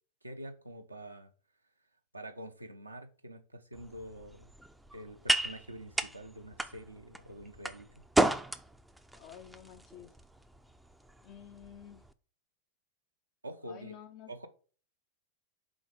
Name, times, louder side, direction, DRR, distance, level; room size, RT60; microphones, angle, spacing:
voice 1, 0.2-1.3 2.1-4.5 4.9-7.9 13.4-14.0 14.3-14.5, right 1 dB, 85° right, 0.6 m, -46 dB
sound 1, 3.7-12.1, right 1 dB, 5° right, 0.4 m, -35 dB
voice 2, 9.1-10.1 11.2-12.0 13.6-14.3, left 9 dB, 45° left, 0.5 m, -50 dB
5.0 x 3.7 x 5.1 m
figure-of-eight pair, 90°, 0 cm